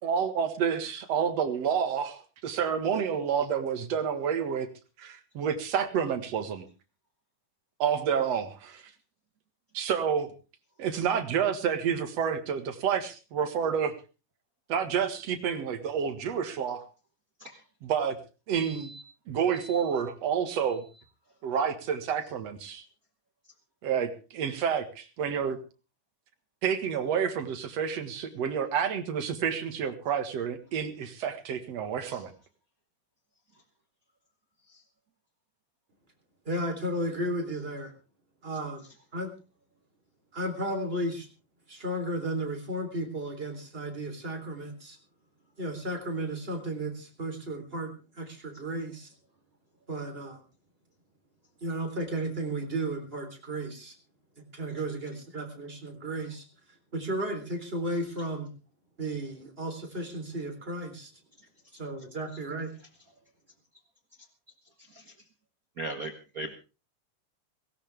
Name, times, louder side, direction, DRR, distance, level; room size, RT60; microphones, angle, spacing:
voice 1, 0.0-4.7 5.0-6.6 7.8-8.9 9.7-10.3 10.8-13.9 14.7-16.9 17.8-18.2 18.5-18.9 19.3-20.8 21.4-22.8 23.8-25.6 26.6-32.3, right 7 dB, 55° right, 8 dB, 2.6 m, -29 dB
voice 2, 18.6-19.0 19.6-19.8 64.9-65.0 65.8-66.5, right 2 dB, 70° right, 5 dB, 0.8 m, -39 dB
voice 3, 36.5-37.9 38.4-38.8 39.1-39.3 40.3-41.3 41.7-45.0 45.6-47.9 48.1-49.1 49.9-50.4 51.6-53.9 54.5-56.4 56.9-58.5 59.0-61.1 61.8-62.7, right 1 dB, 15° right, 3 dB, 3.6 m, -34 dB
18.0 x 17.0 x 3.4 m, 0.33 s
omnidirectional pair, 3.7 m